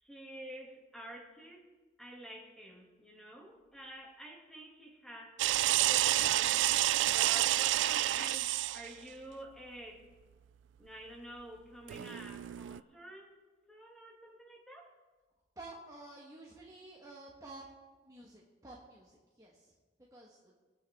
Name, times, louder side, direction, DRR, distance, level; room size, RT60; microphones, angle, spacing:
voice 1, 0.0-1.6 2.0-5.4 5.8-6.6 7.1-10.1 10.8-13.3 13.7-14.9, right 1 dB, ahead, -1 dB, 2.1 m, -49 dB
sound 1, 5.4-8.9 11.9-12.8, right 14 dB, 80° right, 0.3 m, -29 dB
voice 2, 15.6-17.7 18.0-19.7 20.1-20.5, right 2 dB, 20° right, -3 dB, 1.4 m, -51 dB
22.5 x 8.7 x 3.5 m, 1.3 s
head